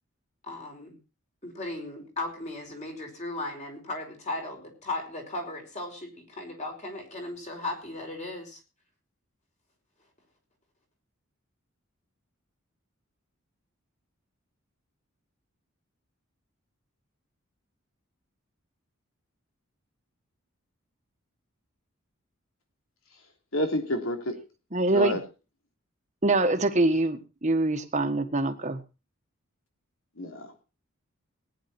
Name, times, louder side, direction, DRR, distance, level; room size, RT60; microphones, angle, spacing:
voice 1, 0.4-1.0 1.4-8.6, left 2 dB, 35° left, 3 dB, 4.9 m, -36 dB
voice 2, 23.5-24.4 24.9-25.2 30.2-30.6, left 1 dB, 75° left, 4 dB, 3.3 m, -29 dB
voice 3, 24.7-25.2 26.2-28.8, right 2 dB, 35° right, 7 dB, 1.5 m, -24 dB
19.0 x 10.5 x 4.4 m, 0.32 s
head